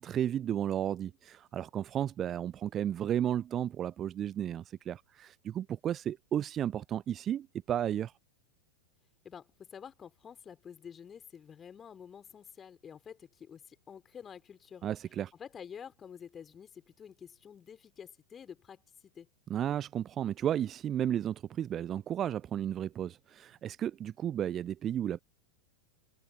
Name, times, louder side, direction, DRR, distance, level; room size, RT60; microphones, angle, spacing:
voice 1, 0.0-8.1 14.8-15.3 19.5-25.2, right 10 dB, 30° right, 0.4 m, -33 dB
voice 2, 9.2-14.9 15.4-19.3, left 7 dB, 20° left, 3.5 m, -49 dB
figure-of-eight pair, 90°, 0 cm